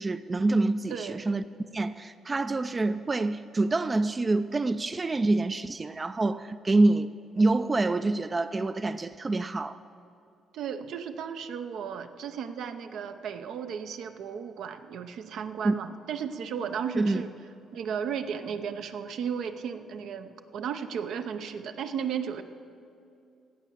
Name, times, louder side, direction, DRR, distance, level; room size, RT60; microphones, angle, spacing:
voice 1, 0.0-1.4 1.7-9.8 15.6-15.8 16.9-17.2, right 2 dB, 25° right, 12 dB, 0.3 m, -26 dB
voice 2, 10.5-17.3 17.7-22.4, right 7 dB, 75° right, 8 dB, 0.6 m, -35 dB
16.0 x 5.5 x 7.5 m, 2.7 s
cardioid pair, 90°, 0 cm